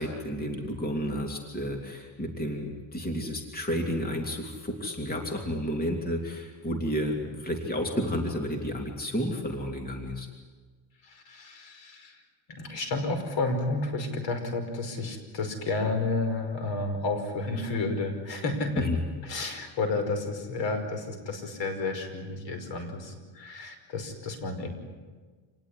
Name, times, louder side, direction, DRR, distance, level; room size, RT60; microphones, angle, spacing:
voice 1, 0.0-10.3 18.8-19.0, equal, 20° left, 2 dB, 3.0 m, -31 dB
voice 2, 11.0-12.2 12.5-18.8 19.2-24.7, left 3 dB, 60° left, 7 dB, 5.5 m, -31 dB
27.5 x 19.0 x 9.9 m, 1.4 s
cardioid pair, 130°, 50 cm